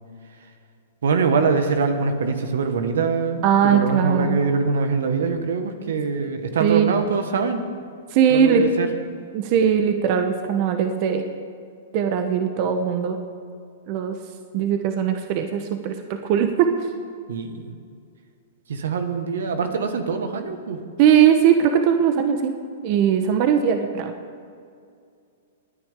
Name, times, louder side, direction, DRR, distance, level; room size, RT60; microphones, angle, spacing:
voice 1, 1.0-7.6 8.3-8.9 17.3-17.7 18.7-20.8, right 4 dB, 80° right, 7 dB, 1.7 m, -23 dB
voice 2, 3.4-4.4 6.6-7.0 8.1-8.6 9.3-11.2 11.9-13.2 13.9-14.2 14.5-16.7 21.0-22.5 22.8-24.1, right 8 dB, 45° right, 6 dB, 1.1 m, -20 dB
29.0 x 10.0 x 3.8 m, 2.3 s
hypercardioid pair, 130°, 0 cm